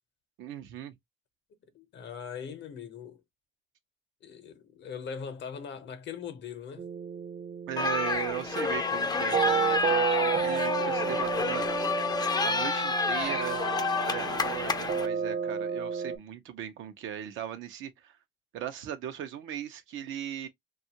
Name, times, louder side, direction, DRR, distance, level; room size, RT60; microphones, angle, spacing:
voice 1, 0.4-0.9 7.7-11.7 12.4-13.6 14.0-18.2 18.5-20.5, right 10 dB, 85° right, 0.6 m, -38 dB
voice 2, 1.7-3.2 4.2-6.9, left 7 dB, 65° left, 0.7 m, -40 dB
sound 1, 6.8-16.2, right 6 dB, 45° right, 0.4 m, -32 dB
sound 2, 7.8-15.1, left 4 dB, 20° left, 0.4 m, -29 dB
2.7 x 2.3 x 2.7 m
cardioid pair, 90°, 20 cm